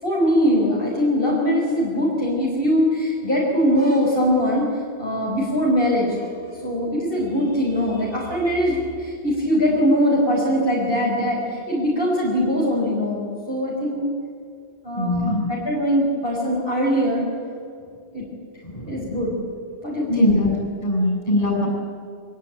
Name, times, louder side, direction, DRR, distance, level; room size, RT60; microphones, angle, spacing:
voice 1, 0.0-4.7 5.0-14.1 14.8-17.3 18.1-18.2 18.9-19.4 19.8-20.5, equal, 50° left, -4 dB, 5.4 m, -22 dB
voice 2, 14.9-15.5 18.6-19.0 20.1-20.5 20.8-21.7, left 1 dB, 30° left, 0 dB, 7.4 m, -21 dB
23.5 x 22.5 x 9.0 m, 2.3 s
omnidirectional pair, 1.2 m